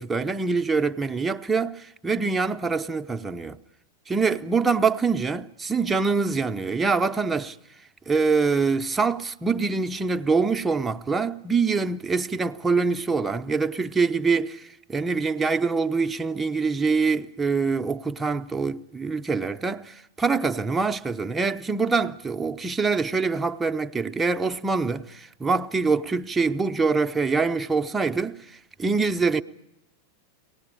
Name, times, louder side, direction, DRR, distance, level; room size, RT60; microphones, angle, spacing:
voice 1, 0.0-3.6 4.1-7.6 8.1-29.4, right 4 dB, 15° right, 0.8 m, -25 dB
23.5 x 18.5 x 8.7 m
figure-of-eight pair, 90°, 0 cm